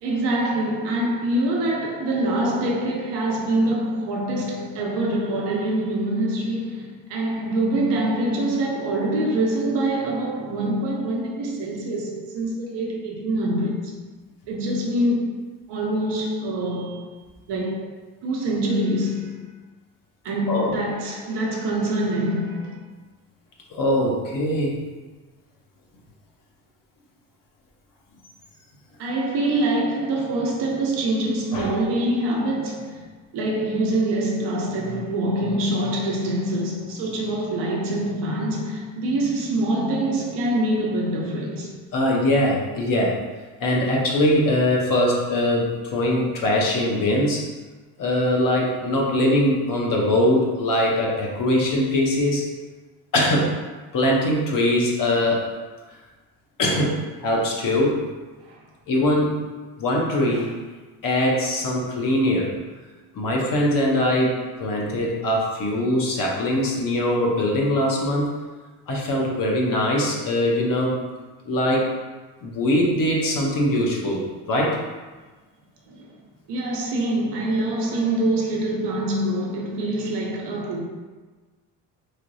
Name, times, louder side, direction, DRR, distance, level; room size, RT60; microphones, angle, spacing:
voice 1, 0.0-14.0 14.5-15.4 15.7-17.1 17.5-17.9 18.2-19.4 20.2-22.8 29.0-33.1 33.3-41.8 58.4-58.6 75.9-76.1 76.5-80.8, right 1 dB, 75° right, 0.8 m, -25 dB
voice 2, 23.7-24.8 31.5-31.7 41.9-43.2 43.6-47.4 48.0-52.4 53.1-53.6 53.9-55.5 56.6-58.0 58.9-59.4 59.8-60.5 61.0-62.5 63.1-68.3 68.9-71.0 71.5-71.9 72.4-74.8, left 1 dB, 50° left, 0.9 m, -22 dB
3.3 x 2.9 x 2.6 m
cardioid pair, 85°, 42 cm